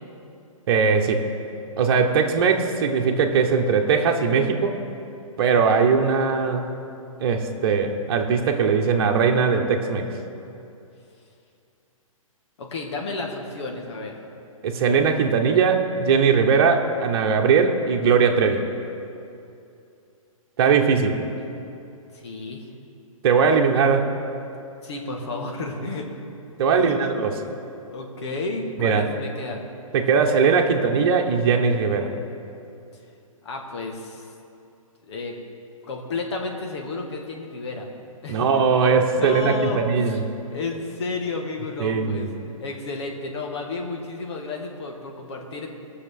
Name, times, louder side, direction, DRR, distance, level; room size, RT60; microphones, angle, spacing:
voice 1, 0.7-1.2 1.8-4.7 5.4-6.7 7.2-10.1 14.6-18.6 20.6-21.2 23.2-24.1 26.6-27.3 28.8-29.1 29.9-32.1 38.3-40.2 41.8-42.3, right 5 dB, 45° right, 3 dB, 1.2 m, -20 dB
voice 2, 12.6-14.2 22.1-22.7 24.8-26.4 26.7-27.1 27.9-29.6 33.4-34.3 35.0-35.4 35.8-37.9 38.2-38.6 39.0-40.2 40.5-45.7, left 3 dB, 50° left, 2 dB, 1.8 m, -32 dB
19.5 x 6.7 x 3.8 m, 2.7 s
figure-of-eight pair, 125°, 18 cm